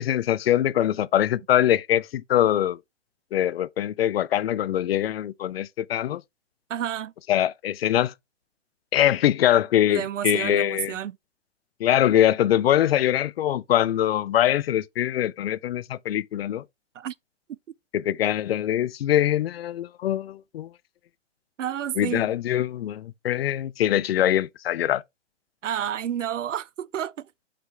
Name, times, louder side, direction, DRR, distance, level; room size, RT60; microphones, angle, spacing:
voice 1, 0.0-2.8 3.3-6.2 7.3-8.1 8.9-10.9 11.8-16.6 17.9-20.7 22.0-25.0, left 11 dB, 55° left, 0.5 m, -23 dB
voice 2, 6.7-7.1 9.9-11.2 17.0-17.1 21.6-22.3 25.6-27.1, right 10 dB, 90° right, 0.5 m, -30 dB
7.7 x 5.0 x 3.4 m
hypercardioid pair, 135°, 36 cm